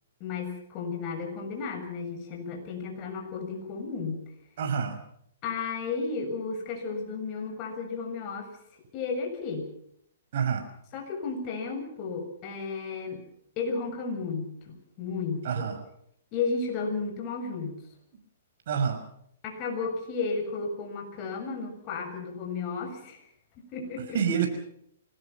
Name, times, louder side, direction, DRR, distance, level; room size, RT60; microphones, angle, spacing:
voice 1, 0.2-4.2 5.4-8.5 8.9-9.7 10.9-13.2 13.6-15.7 16.3-17.8 19.4-23.3 23.6-24.4, left 4 dB, 35° left, 3 dB, 7.3 m, -33 dB
voice 2, 4.6-5.0 10.3-10.7 15.4-15.8 18.7-19.0 24.1-24.5, right 7 dB, 60° right, 6 dB, 5.8 m, -27 dB
25.5 x 19.5 x 6.0 m, 0.70 s
hypercardioid pair, 140°, 0 cm